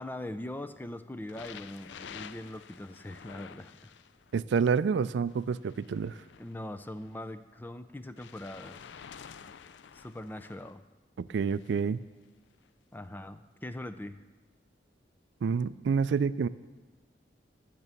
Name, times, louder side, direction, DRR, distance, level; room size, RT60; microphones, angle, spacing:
voice 1, 0.0-3.9 6.4-9.0 9.9-10.8 12.9-14.2, left 1 dB, 10° left, 11 dB, 0.4 m, -41 dB
sound 1, 1.3-4.4 5.3-7.1 8.2-10.7 11.5-11.8 12.6-12.7, left 7 dB, 80° left, 0.4 m, -50 dB
voice 2, 4.3-6.2 11.2-12.0 15.4-16.5, right 5 dB, 75° right, 17 dB, 0.3 m, -28 dB
12.5 x 6.8 x 6.9 m, 1.3 s
head